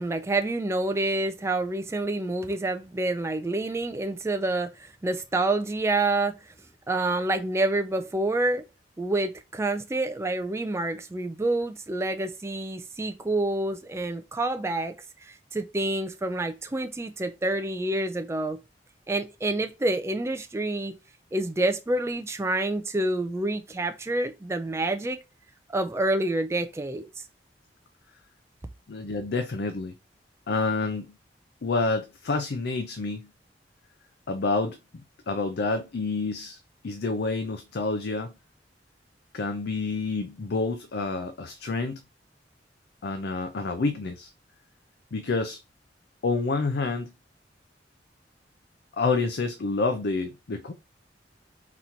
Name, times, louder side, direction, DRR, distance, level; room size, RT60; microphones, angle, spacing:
voice 1, 0.0-6.3 6.9-8.6 9.0-14.9 15.2-18.6 19.1-20.9 21.3-25.2 25.7-27.1, right 2 dB, 15° right, 0.4 m, -28 dB
voice 2, 28.9-29.9 30.5-31.1 31.6-33.3 34.3-34.8 35.3-36.6 36.8-38.3 39.3-42.0 43.0-44.3 45.1-45.6 46.2-47.1 49.0-50.7, left 3 dB, 65° left, 0.5 m, -28 dB
4.0 x 2.9 x 4.3 m
head